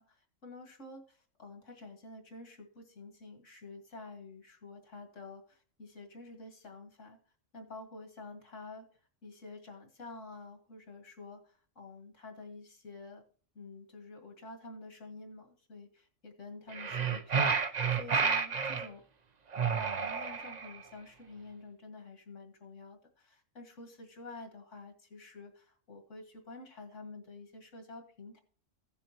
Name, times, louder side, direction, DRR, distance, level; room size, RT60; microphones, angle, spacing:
voice 1, 0.0-7.2 7.5-8.9 9.2-13.2 13.6-19.0 19.5-28.4, left 3 dB, 75° left, 4 dB, 2.2 m, -49 dB
sound 1, 16.7-18.9 19.5-20.8, right 6 dB, 40° right, 0.7 m, -30 dB
16.0 x 7.0 x 2.9 m, 0.42 s
omnidirectional pair, 1.3 m